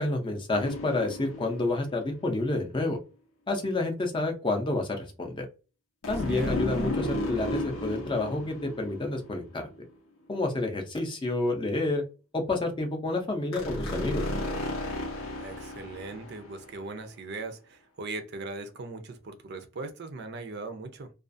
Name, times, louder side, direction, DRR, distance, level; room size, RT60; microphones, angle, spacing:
voice 1, 0.0-3.0 3.5-5.5 6.1-9.7 10.3-12.0 12.3-14.2, left 2 dB, 25° left, 0.5 m, -29 dB
sound 1, 0.5-2.1 6.0-9.8 13.5-16.8, left 1 dB, 85° left, 0.6 m, -34 dB
voice 2, 15.4-21.1, right 3 dB, 50° right, 0.4 m, -39 dB
2.4 x 2.3 x 2.5 m
head